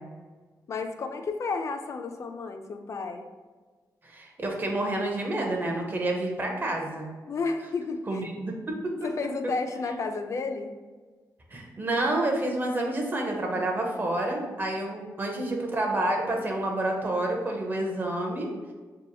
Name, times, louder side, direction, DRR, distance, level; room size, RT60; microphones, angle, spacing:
voice 1, 0.7-3.3 7.3-8.3 9.0-10.7, left 4 dB, 50° left, 6 dB, 0.4 m, -32 dB
voice 2, 4.0-7.1 8.1-8.8 11.5-18.5, right 1 dB, 30° right, 1 dB, 0.7 m, -29 dB
6.1 x 2.8 x 2.3 m, 1.4 s
wide cardioid pair, 145°, 7 cm